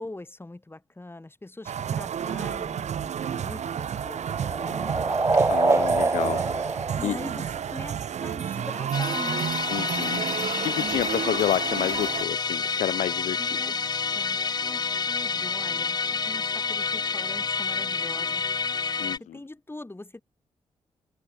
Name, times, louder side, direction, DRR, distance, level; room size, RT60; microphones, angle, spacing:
voice 1, 0.0-5.0 7.0-9.5 13.4-13.8 14.1-18.6 19.2-20.2, left 2 dB, 20° left, 4.7 m, -42 dB
sound 1, 1.6-12.2, right 8 dB, 75° right, 1.5 m, -31 dB
sound 2, 3.2-7.9, right 3 dB, 25° right, 0.7 m, -26 dB
voice 2, 5.3-7.2 9.7-10.3 10.6-13.6 19.0-19.4, left 12 dB, 90° left, 0.7 m, -30 dB
Musical instrument, 8.9-19.2, left 5 dB, 35° left, 0.5 m, -28 dB
cardioid pair, 65°, 12 cm